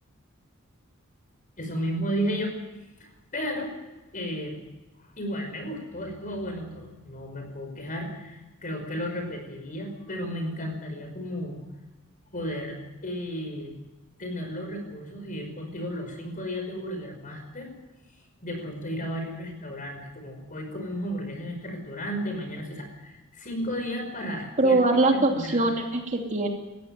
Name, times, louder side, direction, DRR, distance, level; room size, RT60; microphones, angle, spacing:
voice 1, 1.6-2.5 3.0-3.8 4.1-4.6 5.2-11.7 12.3-13.7 14.2-17.7 18.4-24.8 25.3-25.7, equal, 40° left, 4 dB, 5.3 m, -33 dB
voice 2, 24.6-26.5, right 2 dB, 35° right, 2 dB, 2.8 m, -22 dB
19.0 x 15.0 x 9.3 m, 1.1 s
head